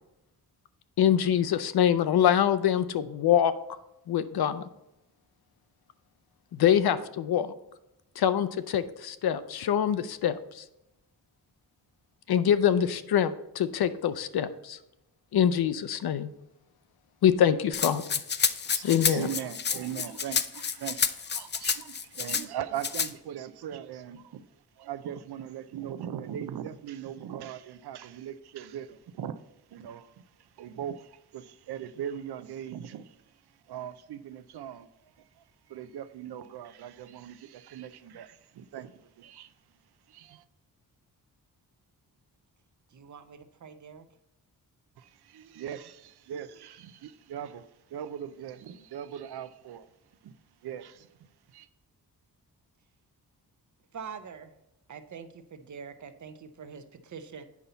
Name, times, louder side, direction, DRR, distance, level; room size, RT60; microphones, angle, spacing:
voice 1, 1.0-3.5 4.1-4.6 6.5-7.5 8.2-10.6 12.3-14.8 15.3-16.3 17.2-18.0 18.8-19.3, left 9 dB, 75° left, 13 dB, 0.6 m, -24 dB
Rattle (instrument), 17.7-22.4 22.8-23.1, left 6 dB, 30° left, 0.4 m, -29 dB
voice 2, 18.7-24.4 24.8-29.4 29.7-33.2 33.7-39.5 40.1-40.4 45.0-49.9 50.2-50.4 50.6-51.7, right 9 dB, 90° right, 12 dB, 0.6 m, -40 dB
voice 3, 42.9-44.1 53.9-54.5 54.9-57.4, right 6 dB, 50° right, 9 dB, 0.7 m, -44 dB
8.4 x 5.6 x 3.9 m, 0.91 s
wide cardioid pair, 140°, 38 cm